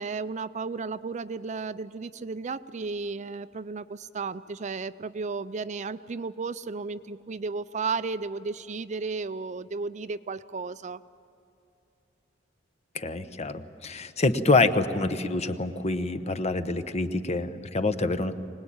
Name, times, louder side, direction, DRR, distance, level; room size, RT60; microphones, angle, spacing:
voice 1, 0.0-11.0, right 4 dB, 40° right, 14 dB, 0.5 m, -34 dB
voice 2, 12.9-18.3, left 3 dB, 35° left, 11 dB, 0.9 m, -26 dB
24.5 x 19.0 x 8.8 m, 2.7 s
head